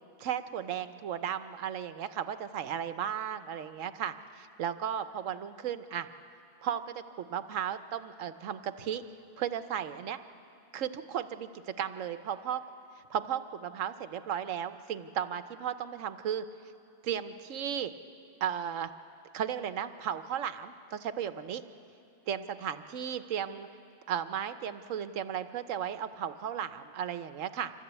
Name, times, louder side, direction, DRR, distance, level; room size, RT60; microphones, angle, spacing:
voice 1, 0.2-6.1 6.6-9.0 9.4-10.2 10.7-11.5 11.8-12.6 13.1-16.4 17.0-17.9 18.4-18.9 19.3-21.6 22.3-23.7 24.1-27.7, right 9 dB, 90° right, 11 dB, 1.2 m, -35 dB
26.0 x 14.0 x 8.2 m, 2.6 s
omnidirectional pair, 1.3 m